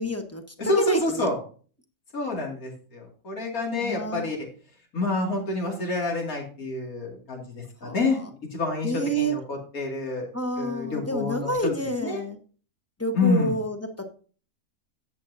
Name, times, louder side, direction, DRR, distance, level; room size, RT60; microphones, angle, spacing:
voice 1, 0.0-1.3 3.8-4.2 7.8-8.0 8.8-9.3 10.3-12.4 13.0-13.8, right 1 dB, 10° left, 6 dB, 0.8 m, -28 dB
voice 2, 0.6-1.4 2.1-4.5 4.9-10.3 10.6-11.5 12.0-12.2 13.1-13.6, left 2 dB, 70° left, -1 dB, 2.9 m, -28 dB
11.0 x 7.6 x 2.7 m, 0.40 s
omnidirectional pair, 1.6 m